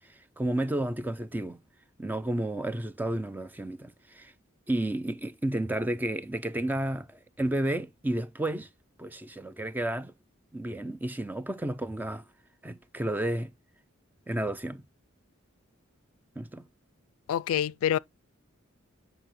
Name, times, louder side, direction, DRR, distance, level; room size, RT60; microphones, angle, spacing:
voice 1, 0.1-1.6 2.0-4.3 4.7-8.7 9.0-10.1 10.5-12.2 12.6-13.5 14.3-14.9 16.4-16.6, right 1 dB, 10° right, 0.4 m, -32 dB
voice 2, 17.3-18.0, left 10 dB, 85° left, 0.3 m, -26 dB
8.7 x 5.4 x 3.0 m
head